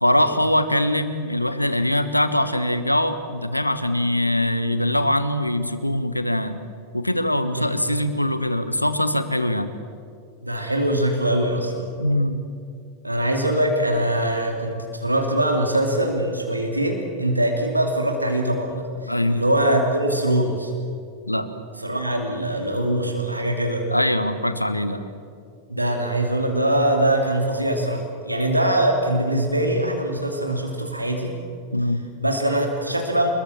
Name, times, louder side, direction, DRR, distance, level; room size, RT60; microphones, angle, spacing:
voice 1, 0.0-6.6 6.9-9.7 12.0-12.4 19.1-19.4 21.3-21.5 23.9-25.0 31.7-32.0, left 1 dB, 85° left, 11 dB, 1.3 m, -22 dB
voice 2, 10.4-11.9 13.0-20.7 21.8-23.9 25.7-31.4 32.2-33.3, right 1 dB, 85° right, 2 dB, 2.7 m, -22 dB
25.5 x 21.5 x 7.3 m, 2.3 s
figure-of-eight pair, 90°, 0 cm